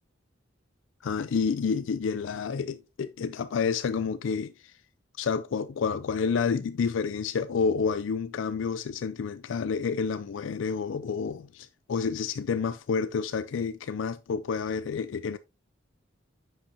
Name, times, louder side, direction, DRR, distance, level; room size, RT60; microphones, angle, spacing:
voice 1, 1.0-4.8 5.2-15.4, left 5 dB, 85° left, 0.4 m, -29 dB
9.7 x 5.7 x 2.8 m
head